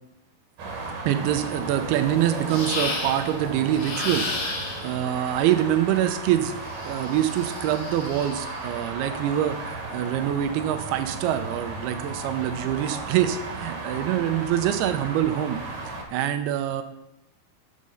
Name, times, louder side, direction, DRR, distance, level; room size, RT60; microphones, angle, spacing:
sound 1, 0.6-16.0, right 3 dB, 65° right, 2.8 m, -35 dB
voice 1, 1.1-4.2 4.8-6.5 6.8-9.6 9.9-15.6 15.9-16.8, right 11 dB, 85° right, 9 dB, 2.6 m, -25 dB
sound 2, 2.5-3.3 3.7-5.0 6.7-8.6, left 3 dB, 75° left, 1.3 m, -32 dB
6.6 x 5.5 x 6.3 m, 0.92 s
omnidirectional pair, 4.6 m